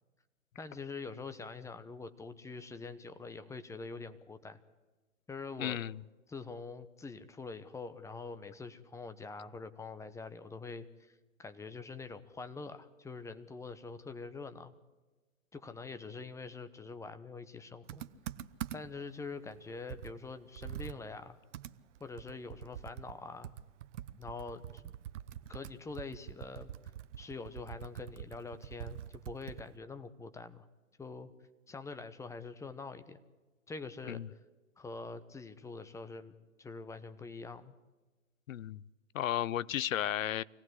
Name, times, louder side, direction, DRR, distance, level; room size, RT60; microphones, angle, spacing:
voice 1, 0.6-4.6 5.3-5.8 6.3-11.1 11.4-14.7 15.5-18.0 18.7-21.4 22.0-23.5 24.2-24.9 25.5-26.7 27.2-30.7 31.0-31.3 31.7-33.2 33.7-34.2 34.8-37.7, left 4 dB, 5° left, 10 dB, 0.9 m, -45 dB
voice 2, 5.6-6.0 34.1-34.3 38.5-38.8 39.1-40.4, left 11 dB, 70° left, 21 dB, 0.7 m, -34 dB
Computer keyboard, 17.9-19.1 19.5-19.6 19.9-29.8, right 11 dB, 60° right, 1.0 m, -45 dB
25.0 x 18.0 x 7.9 m, 1.2 s
hypercardioid pair, 120°, 41 cm